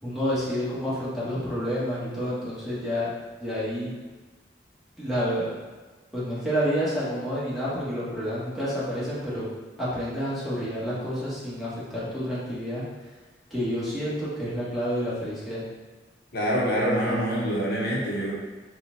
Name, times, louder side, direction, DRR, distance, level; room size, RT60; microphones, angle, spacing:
voice 1, 0.0-3.1 3.4-3.9 5.0-5.5 6.1-9.5 9.8-12.8 13.5-15.6, equal, ahead, -11 dB, 1.4 m, -29 dB
voice 2, 16.3-18.3, equal, 60° left, -6 dB, 1.0 m, -25 dB
4.2 x 2.3 x 3.9 m, 1.3 s
head